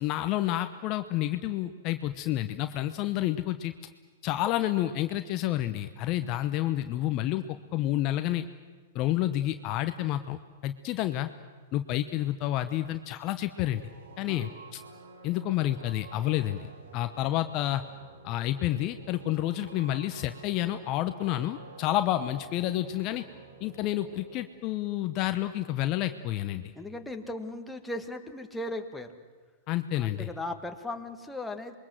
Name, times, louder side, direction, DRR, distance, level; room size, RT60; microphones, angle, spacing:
voice 1, 0.0-3.7 4.2-7.5 7.7-8.4 8.9-11.3 11.7-13.8 14.2-14.8 15.2-16.7 16.9-17.8 18.2-23.2 23.6-26.7 29.7-30.3, left 14 dB, 40° left, 9 dB, 0.9 m, -29 dB
sound 1, 13.8-24.4, right 4 dB, 70° right, 3.7 m, -50 dB
voice 2, 26.7-29.1 30.0-31.8, left 1 dB, 5° left, 4 dB, 1.9 m, -37 dB
27.5 x 22.0 x 7.7 m, 1.4 s
hypercardioid pair, 110°, 0 cm